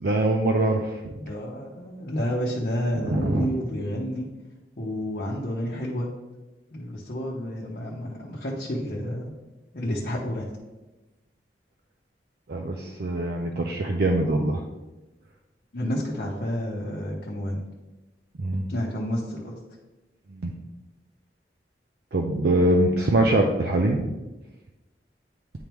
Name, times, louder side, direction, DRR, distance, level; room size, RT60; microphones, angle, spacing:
voice 1, 0.0-1.1 2.9-3.5 12.5-14.6 18.4-18.6 20.3-20.5 22.1-24.2, right 1 dB, 65° right, 2 dB, 0.5 m, -23 dB
voice 2, 1.2-4.3 4.8-6.1 6.7-9.3 9.7-10.5 15.7-17.6 18.7-19.6, equal, 55° left, -4 dB, 0.9 m, -30 dB
9.5 x 3.5 x 3.0 m, 1.1 s
head